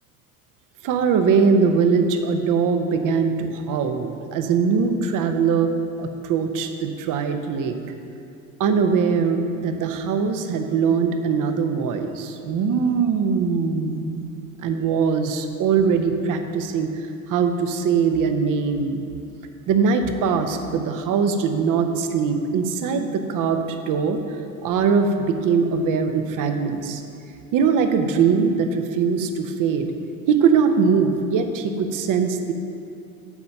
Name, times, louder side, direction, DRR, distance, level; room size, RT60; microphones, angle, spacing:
voice 1, 0.8-5.7 6.0-7.8 8.6-14.2 14.6-19.0 19.7-27.0 27.5-29.9 30.3-32.5, right 5 dB, 50° right, 7 dB, 0.9 m, -21 dB
8.4 x 5.2 x 5.8 m, 2.7 s
hypercardioid pair, 65°, 42 cm